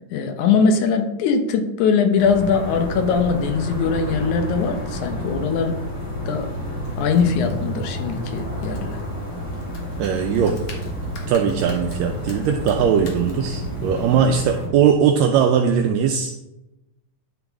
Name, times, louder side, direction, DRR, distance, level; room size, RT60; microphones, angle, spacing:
voice 1, 0.1-5.8 6.3-6.5 7.0-9.0, left 5 dB, 80° left, 6 dB, 2.4 m, -21 dB
Ambience Mountain Outdoor Forat del Vent, 2.2-14.7, equal, 25° left, 3.4 m, -30 dB
Computer keyboard, 6.8-14.2, left 2 dB, 55° left, 2.2 m, -42 dB
voice 2, 10.0-10.6 11.3-16.3, right 7 dB, 80° right, 4 dB, 1.7 m, -19 dB
11.0 x 6.2 x 3.5 m, 0.94 s
omnidirectional pair, 3.5 m